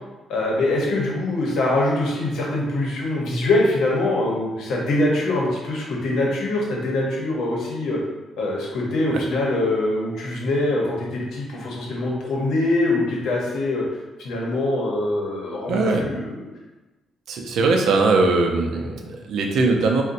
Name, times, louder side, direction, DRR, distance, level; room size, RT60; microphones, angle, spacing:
voice 1, 0.3-8.0 8.4-13.8 14.2-16.3, left 2 dB, 70° left, -2 dB, 0.8 m, -23 dB
voice 2, 15.7-16.1 17.3-20.0, right 3 dB, 70° right, 2 dB, 0.4 m, -20 dB
4.0 x 2.1 x 2.5 m, 1.1 s
cardioid pair, 165°, 0 cm